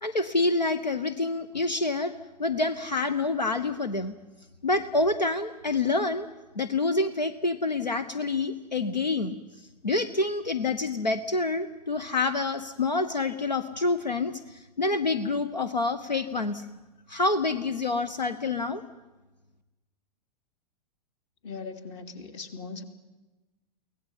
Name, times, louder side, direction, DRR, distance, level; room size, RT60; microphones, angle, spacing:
voice 1, 0.0-2.1 2.4-4.1 4.6-6.3 6.5-16.6 17.1-18.8, left 3 dB, 85° left, 12 dB, 1.1 m, -27 dB
voice 2, 21.4-22.8, left 4 dB, 45° left, 8 dB, 2.7 m, -39 dB
23.5 x 18.0 x 9.7 m, 1.1 s
figure-of-eight pair, 100°, 21 cm